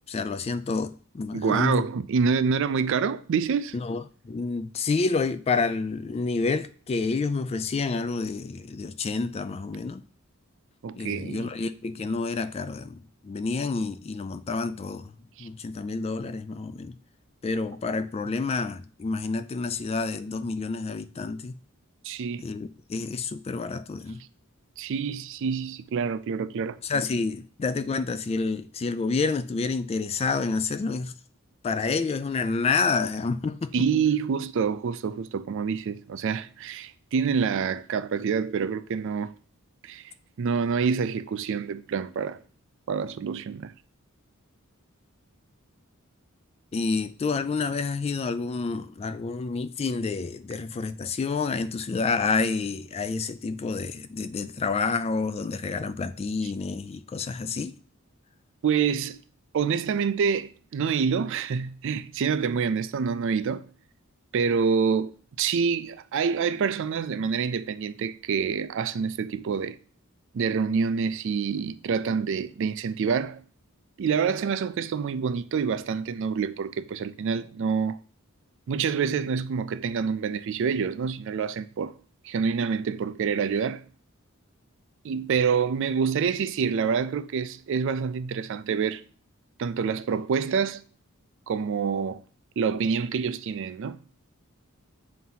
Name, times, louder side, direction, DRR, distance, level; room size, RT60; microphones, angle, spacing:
voice 1, 0.1-1.8 3.7-10.0 10.9-15.1 15.4-17.0 17.4-21.5 22.4-24.2 26.8-31.1 31.6-33.8 46.7-57.8, left 4 dB, 30° left, 0.3 m, -29 dB
voice 2, 1.3-3.8 10.8-11.5 15.4-15.5 22.0-22.4 24.8-26.8 33.7-39.4 39.8-42.4 42.9-43.7 58.6-59.2 59.5-63.7 64.3-69.8 70.3-73.4 74.0-78.0 78.7-81.9 82.2-83.9 85.0-89.0 89.6-90.8 91.5-92.2 92.6-94.0, right 6 dB, 60° right, 0.4 m, -27 dB
7.5 x 2.8 x 5.5 m
head